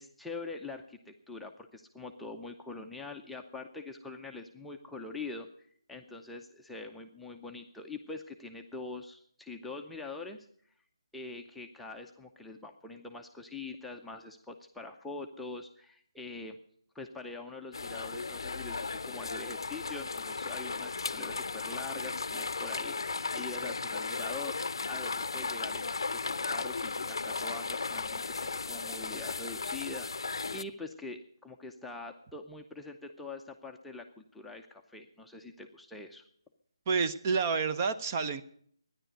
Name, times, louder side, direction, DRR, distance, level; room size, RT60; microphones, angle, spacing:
voice 1, 0.0-5.5 5.9-10.5 11.1-16.6 16.9-36.2, left 3 dB, ahead, 1 dB, 0.6 m, -44 dB
sound 1, 17.7-30.6, left 4 dB, 65° left, 0.6 m, -36 dB
voice 2, 36.9-38.4, right 5 dB, 30° right, 10 dB, 0.7 m, -29 dB
12.0 x 10.5 x 9.1 m, 0.63 s
figure-of-eight pair, 155°, 3 cm